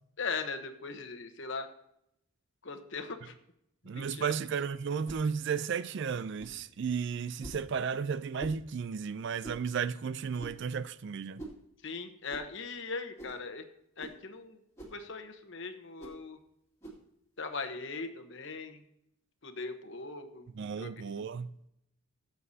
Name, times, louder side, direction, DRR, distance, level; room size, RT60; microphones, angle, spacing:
voice 1, 0.2-1.7 2.6-3.3 3.9-4.3 11.8-13.6 14.0-14.6 14.9-16.4 17.4-18.8 19.4-20.5 20.8-20.9, left 4 dB, 55° left, 1.0 m, -39 dB
voice 2, 3.9-11.4 20.6-21.5, right 6 dB, 50° right, 0.4 m, -34 dB
sound 1, 5.0-5.3 6.4-6.6 7.4-7.7 8.4-8.6 9.4-9.7 10.4-10.7 11.4-11.6 12.3-12.5 13.2-13.4 14.0-14.2 14.8-15.0 16.0-16.2 16.8-17.0, right 2 dB, 15° left, 2.2 m, -45 dB
17.0 x 7.8 x 2.8 m
head